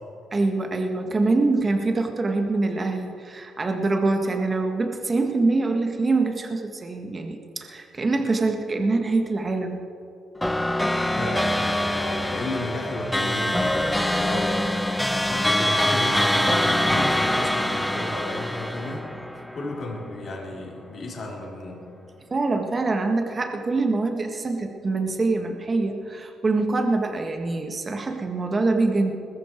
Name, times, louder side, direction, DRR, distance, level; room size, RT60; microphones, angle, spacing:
voice 1, 0.3-9.8 22.3-29.1, right 3 dB, 30° right, 4 dB, 1.7 m, -24 dB
sound 1, 10.4-20.0, left 1 dB, 5° left, 0.9 m, -24 dB
voice 2, 11.2-14.7 15.1-19.1 19.5-21.9, left 2 dB, 50° left, -1 dB, 3.5 m, -33 dB
20.5 x 13.5 x 4.6 m, 2.5 s
cardioid pair, 90°, 0 cm